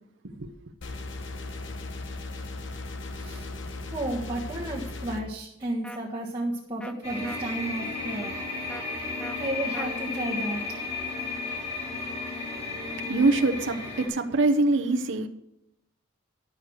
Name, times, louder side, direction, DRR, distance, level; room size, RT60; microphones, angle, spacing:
sound 1, 0.8-5.2, left 2 dB, 60° left, 1.0 m, -37 dB
voice 1, 3.9-8.4 9.3-10.6, right 1 dB, 20° right, 1.3 m, -32 dB
sound 2, 5.8-6.0 6.8-6.9 7.2-7.4 8.7-8.8 9.2-9.4 9.7-9.9, equal, 5° left, 0.4 m, -40 dB
sound 3, 7.0-14.1, left 3 dB, 30° left, 4.7 m, -33 dB
voice 2, 12.6-15.3, right 2 dB, 65° right, 0.8 m, -24 dB
11.0 x 6.6 x 6.3 m
head